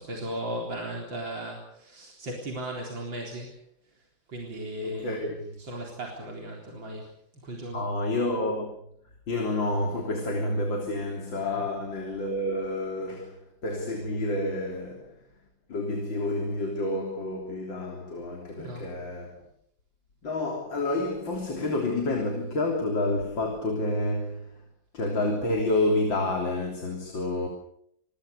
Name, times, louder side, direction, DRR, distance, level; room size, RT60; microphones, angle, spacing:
voice 1, 0.0-3.6 3.9-4.0 4.3-7.1 7.4-7.9 11.3-11.7 18.6-18.9, right 1 dB, 90° right, 4.7 m, -37 dB
voice 2, 4.8-5.5 7.7-8.7 9.3-15.1 15.7-19.4 20.2-24.5 24.9-27.5, left 2 dB, 85° left, 4.2 m, -29 dB
27.5 x 21.5 x 6.8 m
omnidirectional pair, 2.0 m